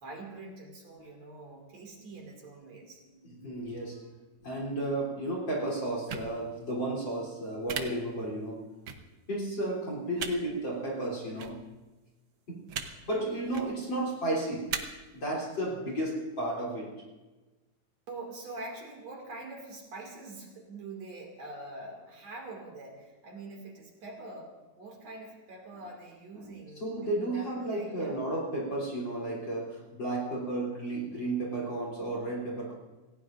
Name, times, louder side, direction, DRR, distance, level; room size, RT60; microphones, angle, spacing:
voice 1, 0.0-3.0 18.1-28.2, right 2 dB, 55° right, 0 dB, 3.5 m, -44 dB
voice 2, 3.2-4.1 4.4-8.7 9.3-11.7 12.5-14.8 15.1-17.0 26.4-32.7, right 1 dB, 35° left, -4 dB, 3.8 m, -33 dB
sound 1, 6.1-6.3 7.7-7.8 8.9-9.0 10.2-10.3 11.4-11.5 12.7-12.9 13.4-13.7 14.7-14.8, right 7 dB, 80° right, 1.1 m, -34 dB
27.5 x 16.5 x 2.6 m, 1.2 s
omnidirectional pair, 3.8 m